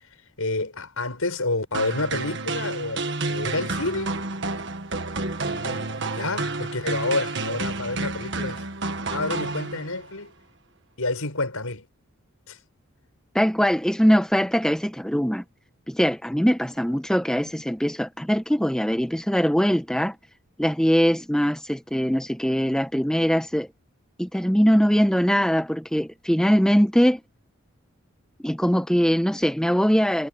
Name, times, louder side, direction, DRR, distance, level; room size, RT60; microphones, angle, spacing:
voice 1, 0.4-4.2 5.5-8.6 9.1-10.3 11.0-11.9 12.5-12.6, left 2 dB, 80° left, 5.7 m, -29 dB
sound 1, 1.7-10.1, right 3 dB, 55° right, 1.7 m, -30 dB
voice 2, 13.3-15.4 15.9-20.2 20.6-23.7 24.2-27.2 28.4-30.3, equal, 5° left, 0.9 m, -21 dB
head